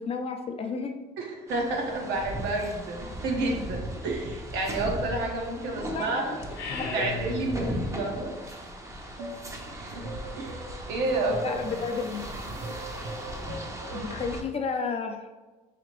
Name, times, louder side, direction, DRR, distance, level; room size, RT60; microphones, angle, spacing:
voice 1, 0.0-1.0 5.8-6.4 6.7-7.2 11.3-12.5 13.9-15.3, left 5 dB, 35° left, 5 dB, 0.5 m, -33 dB
voice 2, 1.2-6.3 6.9-8.3 9.7-10.1 10.4-11.5 12.6-12.7, right 2 dB, 80° right, 0 dB, 1.0 m, -30 dB
sound 1, 1.5-14.4, right 1 dB, 20° right, 0.6 m, -38 dB
sound 2, 6.4-8.0, left 4 dB, 75° left, 0.7 m, -36 dB
sound 3, 9.2-14.3, right 1 dB, 55° right, 0.8 m, -40 dB
4.9 x 2.8 x 3.0 m, 1.3 s
cardioid pair, 110°, 17 cm